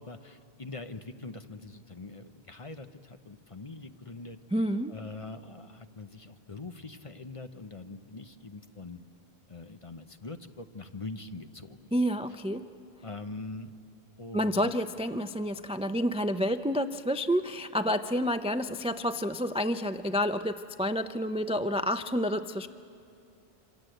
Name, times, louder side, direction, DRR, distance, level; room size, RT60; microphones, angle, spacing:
voice 1, 0.0-4.4 4.9-9.0 9.5-11.9 13.0-13.7 14.2-14.7, left 3 dB, 35° left, 8 dB, 0.9 m, -43 dB
voice 2, 4.5-5.0 11.9-12.7 14.3-22.7, equal, 10° right, 10 dB, 0.4 m, -29 dB
27.0 x 26.0 x 7.9 m, 2.5 s
omnidirectional pair, 1.1 m